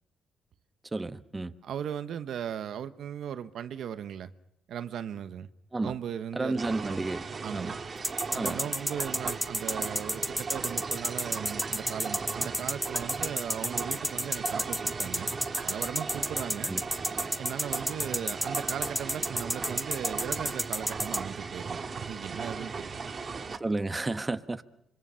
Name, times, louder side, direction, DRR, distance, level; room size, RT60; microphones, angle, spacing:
voice 1, 0.9-1.5 5.7-5.9 6.3-7.2 7.5-7.7 8.3-8.6 16.6-16.8 23.6-24.6, right 2 dB, 20° right, 1.2 m, -31 dB
voice 2, 1.6-4.3 4.7-5.5 5.8-7.1 7.4-7.7 8.3-15.3 15.6-16.7 17.4-23.0, right 9 dB, 70° right, 1.0 m, -37 dB
sound 1, 6.6-23.6, right 5 dB, 40° right, 1.7 m, -37 dB
sound 2, 8.0-21.2, equal, 5° left, 0.9 m, -30 dB
26.0 x 24.0 x 5.7 m
cardioid pair, 90°, 0 cm